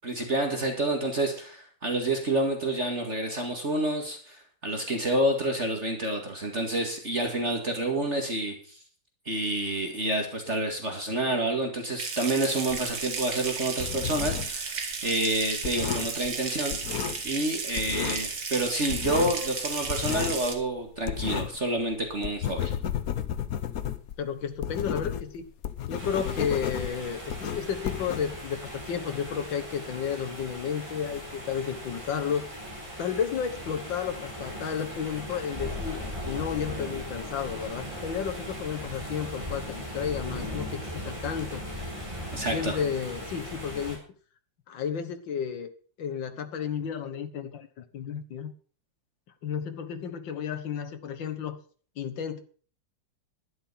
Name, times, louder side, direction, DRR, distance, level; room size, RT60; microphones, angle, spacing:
voice 1, 0.0-8.8 9.3-16.8 17.2-22.7 42.3-42.8, right 1 dB, 35° right, 3 dB, 2.2 m, -28 dB
Water tap faucet / Sink (filling or washing) / Trickle dribble, 12.0-20.5, right 5 dB, 60° right, 2.4 m, -34 dB
sound 1, 12.7-14.6 14.9-17.5 17.7-18.3 18.6-21.7 22.0-28.7, left 9 dB, 55° left, 1.2 m, -33 dB
voice 2, 24.2-25.5 25.9-32.5 33.0-41.6 42.5-44.0 44.7-45.7 46.0-48.5 49.4-51.6 52.0-52.4, left 7 dB, 75° left, 9 dB, 2.0 m, -32 dB
sound 2, 26.0-44.0, equal, 15° right, 4.1 m, -38 dB
11.5 x 10.5 x 5.6 m, 0.42 s
omnidirectional pair, 2.1 m